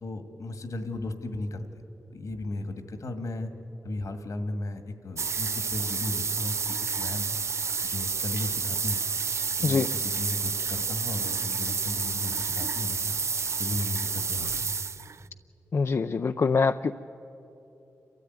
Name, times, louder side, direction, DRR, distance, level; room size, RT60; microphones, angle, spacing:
voice 1, 0.0-1.6 2.1-3.5 3.8-7.4 7.8-9.0 9.6-13.1 13.6-14.7, left 2 dB, 75° left, 8 dB, 1.9 m, -35 dB
sound 1, 5.2-15.2, right 5 dB, 55° right, 0.5 m, -30 dB
voice 2, 15.7-17.0, left 5 dB, 55° left, 9 dB, 0.5 m, -24 dB
29.0 x 13.5 x 9.6 m, 3.0 s
cardioid pair, 55°, 6 cm